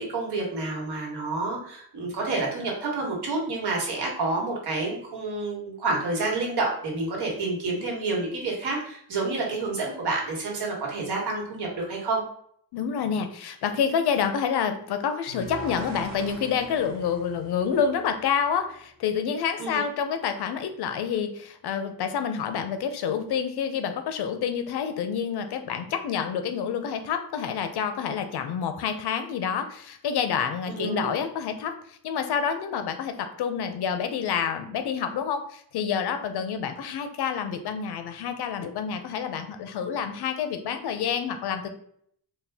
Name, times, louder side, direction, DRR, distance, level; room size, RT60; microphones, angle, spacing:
voice 1, 0.0-12.2 19.6-19.8 30.7-31.2, right 3 dB, 90° right, -1 dB, 1.3 m, -29 dB
voice 2, 12.7-41.7, left 7 dB, 80° left, 8 dB, 0.6 m, -28 dB
sound 1, 15.3-18.5, right 2 dB, 45° right, 0.8 m, -41 dB
4.2 x 2.2 x 3.4 m, 0.66 s
wide cardioid pair, 170°, 38 cm